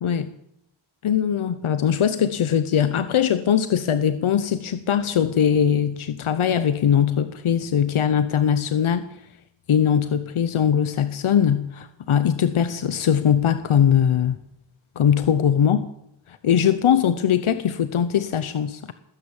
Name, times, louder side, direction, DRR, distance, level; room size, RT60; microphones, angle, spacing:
voice 1, 1.0-9.2 9.7-14.4 15.0-15.8 16.3-18.9, left 8 dB, 85° left, 12 dB, 0.8 m, -21 dB
20.5 x 9.8 x 7.2 m, 0.80 s
wide cardioid pair, 80°, 48 cm